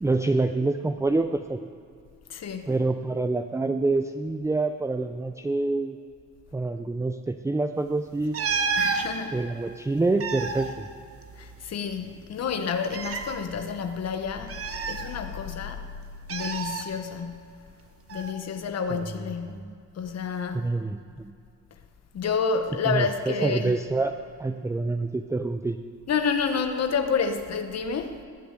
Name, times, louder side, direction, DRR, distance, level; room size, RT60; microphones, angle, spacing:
voice 1, 0.0-1.6 2.7-6.0 6.5-8.4 9.3-10.9 18.9-19.0 19.5-19.8 20.5-21.3 22.8-25.8, right 3 dB, 10° right, 0.5 m, -27 dB
voice 2, 2.3-2.7 8.8-9.4 11.4-14.6 14.9-15.9 16.3-17.6 18.1-19.7 19.9-20.7 22.1-23.8 26.1-28.2, left 5 dB, 55° left, 1.0 m, -29 dB
sound 1, 8.3-9.1 10.0-11.7 11.9-12.0 12.8-13.4 14.5-15.5 16.3-16.9 18.1-18.3, right 5 dB, 50° right, 1.3 m, -30 dB
20.0 x 6.9 x 8.1 m
cardioid pair, 90°, 30 cm